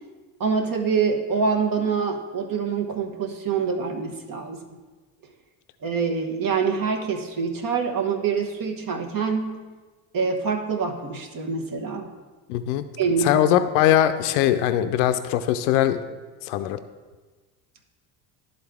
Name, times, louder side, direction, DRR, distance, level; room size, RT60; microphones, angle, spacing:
voice 1, 0.4-4.6 5.8-9.6 10.1-12.1 13.0-13.4, right 5 dB, 45° right, 3 dB, 1.1 m, -25 dB
voice 2, 12.5-12.8 13.2-16.2 16.4-16.8, left 11 dB, 80° left, 10 dB, 0.5 m, -21 dB
11.0 x 3.9 x 3.5 m, 1.3 s
supercardioid pair, 80°, 45 cm